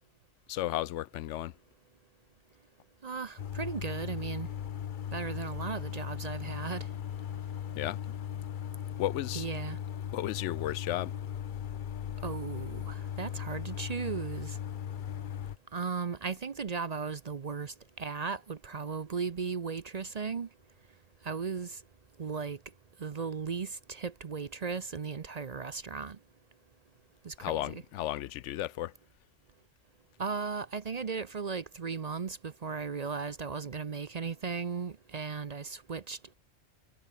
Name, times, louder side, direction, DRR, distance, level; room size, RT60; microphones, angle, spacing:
voice 1, 0.5-1.5 7.7-8.0 9.0-9.5 10.1-11.1 27.4-28.9, left 14 dB, 85° left, 0.9 m, -34 dB
voice 2, 3.0-4.5 5.1-6.9 9.3-9.8 12.2-14.6 15.7-20.5 21.2-21.8 22.2-22.6 23.0-26.2 27.2-27.8 30.2-36.3, right 5 dB, 40° right, 0.7 m, -36 dB
sound 1, 3.4-15.6, left 9 dB, 50° left, 0.7 m, -38 dB
omnidirectional pair, 1.2 m